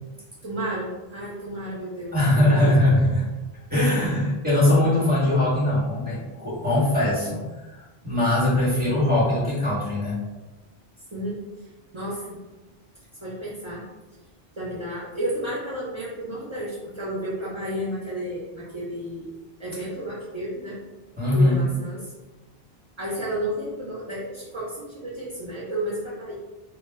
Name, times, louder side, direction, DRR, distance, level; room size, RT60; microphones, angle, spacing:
voice 1, 0.4-2.7 11.1-11.3 11.6-12.4 13.2-13.8 14.6-19.3 19.6-20.8 21.3-22.0 23.0-26.3, right 1 dB, 45° right, -7 dB, 0.4 m, -32 dB
voice 2, 2.1-3.2 3.7-10.2 21.2-21.7, left 1 dB, 10° right, -7 dB, 0.8 m, -21 dB
2.1 x 2.0 x 3.3 m, 1.1 s
omnidirectional pair, 1.0 m